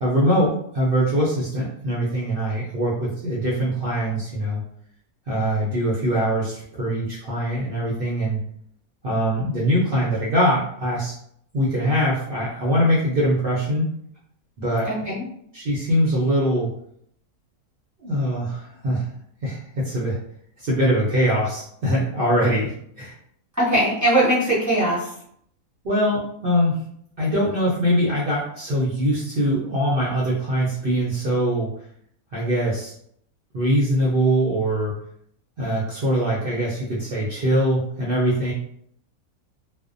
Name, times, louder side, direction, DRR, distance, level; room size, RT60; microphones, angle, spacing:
voice 1, 0.0-4.6 5.3-8.4 9.0-11.1 11.5-13.9 14.6-14.9 15.5-16.7 18.0-19.1 19.4-20.2 20.6-23.1 25.8-26.7 27.2-31.7 32.3-32.9 33.5-34.9 35.6-38.5, equal, 65° right, -6 dB, 0.5 m, -22 dB
voice 2, 14.9-15.2 23.6-25.1, right 1 dB, 20° right, -8 dB, 0.6 m, -20 dB
2.5 x 2.0 x 2.4 m, 0.69 s
omnidirectional pair, 1.5 m